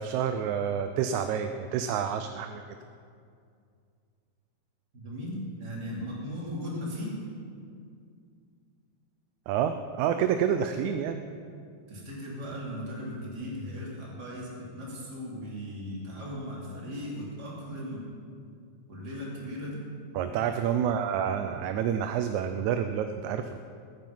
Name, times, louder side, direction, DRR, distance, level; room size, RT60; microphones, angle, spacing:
voice 1, 0.0-2.6 9.5-11.2 20.2-23.6, right 8 dB, 85° right, 8 dB, 2.0 m, -28 dB
voice 2, 4.9-7.2 10.7-10.9 11.9-18.1 18.9-19.8, equal, 35° right, -5 dB, 3.7 m, -37 dB
21.0 x 9.4 x 5.5 m, 2.3 s
omnidirectional pair, 3.3 m